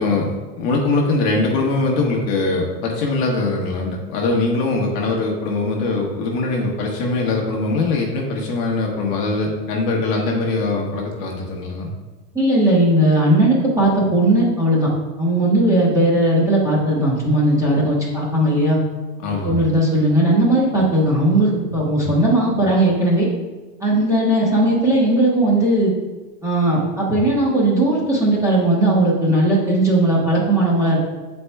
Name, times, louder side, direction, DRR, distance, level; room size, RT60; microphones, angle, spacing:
voice 1, 0.0-11.9 19.2-19.6, left 3 dB, 35° left, 0 dB, 1.0 m, -22 dB
voice 2, 12.3-14.9 15.2-18.8 19.4-23.3 23.8-25.9 26.4-31.0, right 1 dB, 5° right, -5 dB, 1.0 m, -17 dB
6.9 x 4.4 x 3.4 m, 1.2 s
hypercardioid pair, 140°, 46 cm